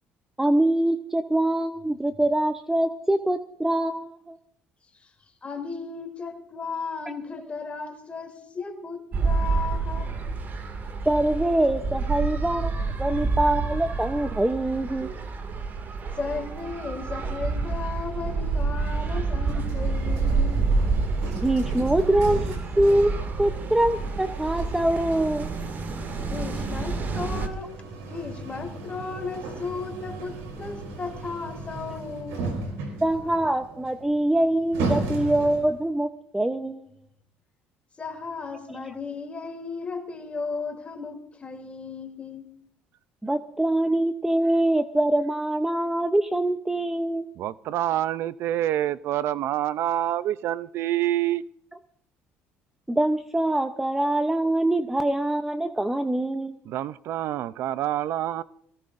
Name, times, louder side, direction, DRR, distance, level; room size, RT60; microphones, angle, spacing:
voice 1, 0.4-4.4 11.1-15.1 21.4-23.1 23.4-25.5 33.0-36.8 43.2-47.3 52.9-56.6, right 1 dB, 10° right, 0.7 m, -24 dB
voice 2, 5.4-10.1 16.2-20.7 26.3-27.8 28.1-32.5 38.0-42.5, left 4 dB, 25° left, 3.0 m, -35 dB
sound 1, 9.1-27.5, right 4 dB, 45° right, 2.2 m, -28 dB
sound 2, 19.4-35.8, right 3 dB, 85° right, 4.4 m, -36 dB
voice 3, 47.4-51.4 56.7-58.4, right 12 dB, 65° right, 0.5 m, -27 dB
23.0 x 17.5 x 2.6 m
supercardioid pair, 95°, 5 cm